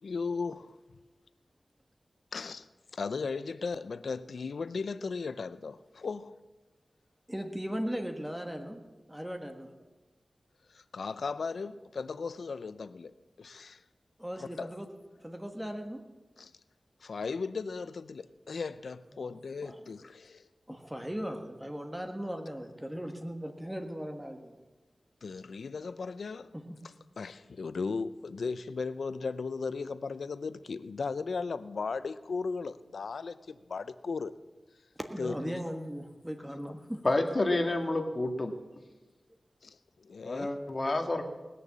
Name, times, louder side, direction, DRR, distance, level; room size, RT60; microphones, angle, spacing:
voice 1, 0.0-0.8 2.3-2.7 2.9-6.4 10.7-13.8 14.4-14.7 16.4-16.5 17.0-20.5 25.2-26.5 27.2-34.3 35.2-35.6 39.6-40.5, left 4 dB, 90° left, 0.5 m, -36 dB
voice 2, 7.3-8.8 9.1-9.7 14.2-14.9 15.2-16.0 19.1-19.8 20.7-24.6 26.5-26.6 34.9-37.0, equal, 10° right, 1.4 m, -38 dB
voice 3, 37.0-38.5 40.2-41.3, left 2 dB, 45° left, 1.7 m, -29 dB
19.5 x 6.8 x 7.4 m
wide cardioid pair, 55°, 0 cm